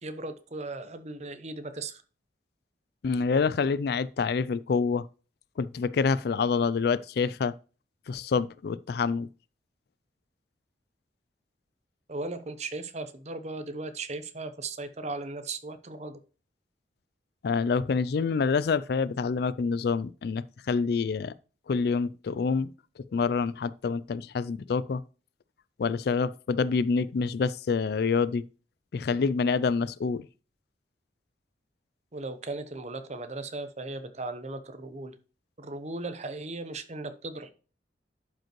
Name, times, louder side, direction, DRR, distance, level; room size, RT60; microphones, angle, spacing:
voice 1, 0.0-2.0 12.1-16.2 32.1-35.1 35.6-37.5, right 2 dB, 40° right, 0.8 m, -37 dB
voice 2, 3.0-5.1 5.6-7.5 8.1-9.3 17.4-21.3 21.7-22.7 23.1-25.0 25.8-28.4 28.9-30.3, left 5 dB, 60° left, 0.4 m, -27 dB
11.5 x 5.3 x 3.0 m
head